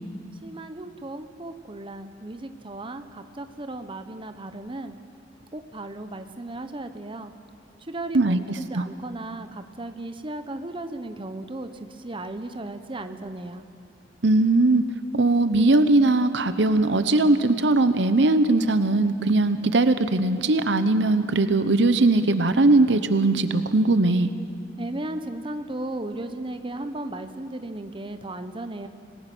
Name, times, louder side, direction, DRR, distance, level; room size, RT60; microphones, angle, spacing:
voice 1, 0.4-5.0 5.5-7.3 7.8-13.6 24.8-28.9, right 2 dB, 30° right, 8 dB, 1.0 m, -35 dB
voice 2, 14.2-14.8 15.1-24.3, right 2 dB, 70° right, 11 dB, 0.9 m, -20 dB
27.0 x 19.5 x 6.2 m, 2.3 s
head